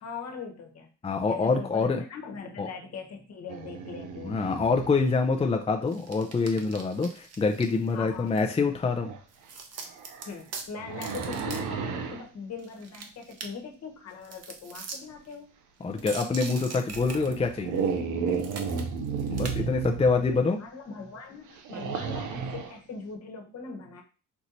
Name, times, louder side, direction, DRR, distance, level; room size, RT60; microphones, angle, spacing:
voice 1, 0.0-0.9 1.2-4.4 7.9-8.4 10.2-15.5 19.5-24.0, left 5 dB, 60° left, 3 dB, 1.2 m, -41 dB
voice 2, 1.0-2.0 2.6-2.7 4.2-9.1 15.8-17.8 19.3-20.6, left 4 dB, 20° left, 3 dB, 0.5 m, -26 dB
sound 1, 3.5-5.1 8.1-8.2 9.0-9.2 9.8-12.2 16.0-16.1 16.9-20.3 21.5-22.8, right 6 dB, 80° right, 0.8 m, -33 dB
sound 2, 5.9-8.5 9.3-10.6 11.0-11.6 11.9-12.0 12.6-13.5 14.2-15.0 15.3-15.4 15.9-18.0 18.3-19.6 19.8-19.9, right 4 dB, 55° right, 1.0 m, -42 dB
4.7 x 2.8 x 4.0 m, 0.36 s
cardioid pair, 90°, 30 cm